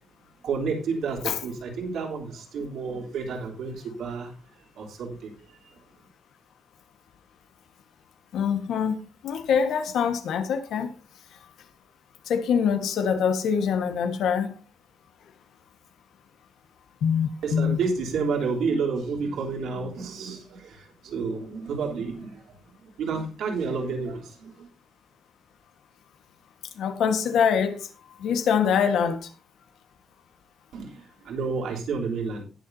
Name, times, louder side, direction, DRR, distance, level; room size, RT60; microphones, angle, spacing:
voice 1, 0.4-4.3 4.8-5.3 17.4-24.7 30.7-32.4, right 4 dB, 70° right, 3.5 m, -30 dB
voice 2, 8.3-9.0 9.2-10.9 11.3-11.5 12.2-14.5 17.0-17.8 26.8-27.9 28.2-29.3, left 7 dB, 70° left, 1.4 m, -24 dB
19.0 x 7.0 x 2.7 m
cardioid pair, 175°, 0 cm